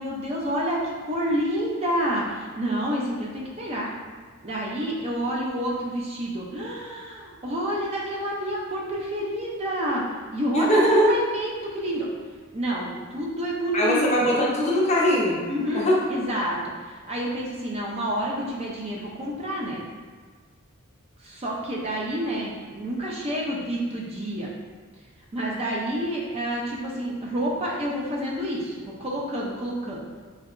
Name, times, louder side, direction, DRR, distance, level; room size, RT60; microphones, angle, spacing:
voice 1, 0.0-3.9 4.4-10.0 10.3-12.1 12.5-14.3 15.5-16.6 16.9-19.8 21.2-24.5 25.3-30.1, equal, 30° right, -3 dB, 0.4 m, -29 dB
voice 2, 10.5-11.1 13.7-15.4 15.7-16.0, equal, 30° left, -4 dB, 0.5 m, -20 dB
3.4 x 2.7 x 2.4 m, 1.5 s
head